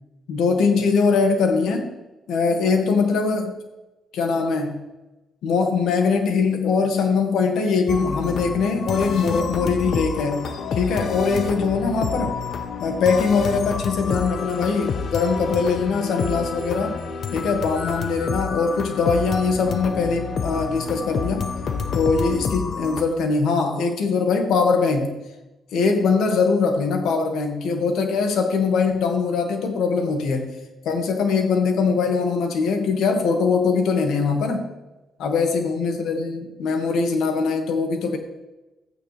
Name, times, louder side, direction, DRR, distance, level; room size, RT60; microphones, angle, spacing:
voice 1, 0.3-1.9 2.3-3.5 4.1-4.8 5.4-12.3 12.8-17.0 17.3-21.4 21.9-25.2 25.7-30.5 30.8-34.6 35.2-38.2, left 4 dB, 80° left, 3 dB, 2.1 m, -22 dB
sound 1, 7.9-23.0, left 5 dB, 55° left, 1.1 m, -29 dB
14.0 x 9.3 x 3.5 m, 1.0 s
cardioid pair, 90°, 0 cm